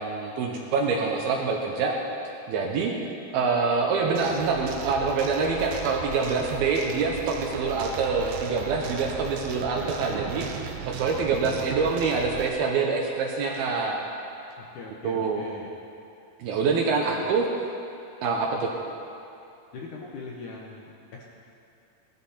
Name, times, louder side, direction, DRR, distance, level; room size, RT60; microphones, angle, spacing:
voice 1, 0.0-2.0 2.5-2.9 3.3-14.0 15.0-15.4 16.4-17.5 18.2-18.7, right 4 dB, 75° right, 0 dB, 2.7 m, -26 dB
sound 1, 4.2-12.5, right 8 dB, 90° right, 3.0 m, -37 dB
voice 2, 14.6-15.7 17.1-17.3 19.7-21.2, left 4 dB, 70° left, -2 dB, 1.9 m, -41 dB
17.5 x 13.5 x 4.3 m, 2.6 s
omnidirectional pair, 4.8 m